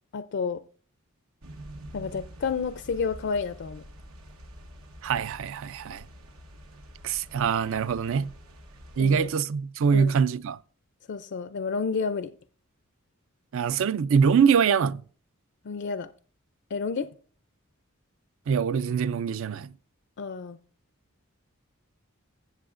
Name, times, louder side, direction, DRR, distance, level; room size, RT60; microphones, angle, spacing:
voice 1, 0.1-0.6 1.9-3.8 9.0-9.3 9.9-10.1 11.1-12.3 15.6-16.1 16.7-17.1 20.2-20.6, left 5 dB, 55° left, 0.4 m, -30 dB
sound 1, 1.4-9.3, equal, 90° right, 1.0 m, -47 dB
voice 2, 5.0-6.0 7.0-8.3 9.0-10.6 13.5-15.0 18.5-19.7, right 6 dB, 65° right, 0.4 m, -24 dB
16.5 x 6.9 x 2.5 m
head